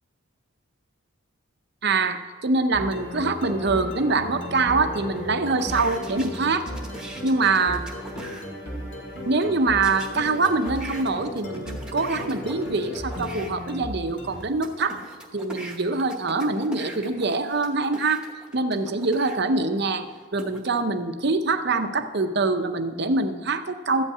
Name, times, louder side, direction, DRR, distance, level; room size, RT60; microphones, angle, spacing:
voice 1, 1.8-6.7 7.2-7.9 9.3-15.0 15.3-18.2 18.5-24.0, right 3 dB, 50° right, 8 dB, 0.7 m, -24 dB
sound 1, 2.7-14.7, left 1 dB, 55° left, 2.1 m, -35 dB
sound 2, 5.6-8.5 9.8-13.5 14.1-19.4 20.0-20.8, right 1 dB, 5° right, 1.1 m, -41 dB
13.5 x 5.5 x 8.4 m, 1.5 s
head